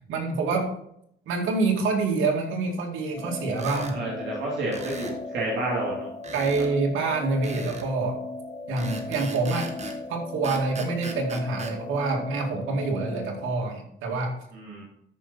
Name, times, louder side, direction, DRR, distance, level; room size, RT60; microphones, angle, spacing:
voice 1, 0.1-0.7 1.3-4.0 6.3-8.2 8.7-9.7 10.1-14.4, right 3 dB, 90° right, 1 dB, 2.3 m, -26 dB
sound 1, 3.1-13.5, left 3 dB, 15° left, 1.6 m, -37 dB
sound 2, 3.5-4.0 4.7-5.2 6.2-6.7 7.4-7.9 8.8-10.0 10.4-11.8, right 2 dB, 35° right, 1.7 m, -39 dB
voice 2, 3.7-6.1 14.5-14.8, right 2 dB, 70° right, -4 dB, 3.1 m, -30 dB
13.0 x 5.6 x 4.1 m, 0.74 s
cardioid pair, 90°, 20 cm